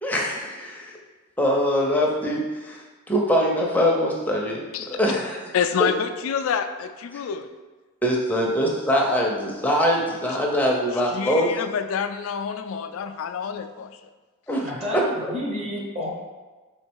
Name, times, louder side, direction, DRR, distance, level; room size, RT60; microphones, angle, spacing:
voice 1, 0.0-0.9 1.4-2.8 3.1-4.6 4.9-5.5 7.1-7.2 8.0-11.5 14.5-15.1, equal, 10° left, -2 dB, 0.6 m, -23 dB
voice 2, 5.5-7.5 11.1-13.9, left 7 dB, 75° left, 8 dB, 0.3 m, -27 dB
voice 3, 14.6-16.1, left 1 dB, 30° right, -2 dB, 0.9 m, -31 dB
3.6 x 3.1 x 4.6 m, 1.3 s
head